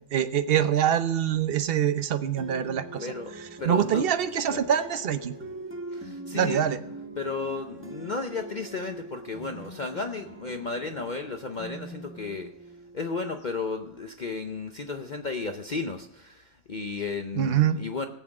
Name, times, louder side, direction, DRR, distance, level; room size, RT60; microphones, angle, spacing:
voice 1, 0.1-3.1 3.7-5.3 6.3-6.8 17.4-17.8, right 9 dB, 55° right, 11 dB, 0.7 m, -24 dB
sound 1, 2.3-13.5, right 2 dB, 10° right, 1.2 m, -43 dB
voice 2, 3.0-3.3 3.6-4.1 4.5-4.7 5.9-6.7 7.2-12.5 12.9-18.1, left 4 dB, 70° left, 5 dB, 0.4 m, -34 dB
17.5 x 7.5 x 6.0 m, 0.82 s
omnidirectional pair, 1.8 m